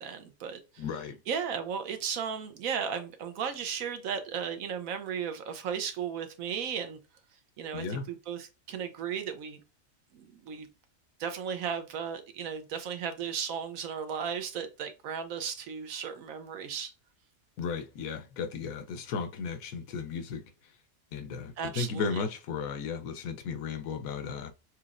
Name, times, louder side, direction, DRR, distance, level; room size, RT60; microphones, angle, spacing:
voice 1, 0.0-0.8 1.3-7.0 7.6-9.6 10.1-10.7 11.2-16.9 21.6-22.2, right 7 dB, 75° right, 1.2 m, -35 dB
voice 2, 0.8-1.2 7.7-8.1 17.6-20.4 21.1-24.5, left 5 dB, 80° left, 1.1 m, -35 dB
6.2 x 2.9 x 2.5 m
omnidirectional pair, 1.5 m